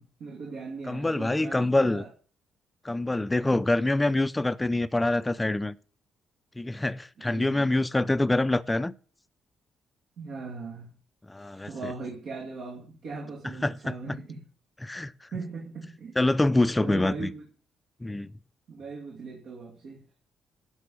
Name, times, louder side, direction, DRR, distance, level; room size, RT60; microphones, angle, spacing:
voice 1, 0.0-2.1 7.2-7.7 10.2-10.9 11.4-14.4 15.3-16.2 16.8-17.4 18.7-20.0, right 4 dB, 70° right, 2.4 m, -39 dB
voice 2, 0.9-2.0 2.8-5.8 6.6-8.9 11.3-11.7 13.6-14.0 14.8-15.1 16.2-17.3 18.0-18.3, left 2 dB, 15° left, 0.5 m, -25 dB
13.0 x 5.5 x 6.9 m
cardioid pair, 90°, 0 cm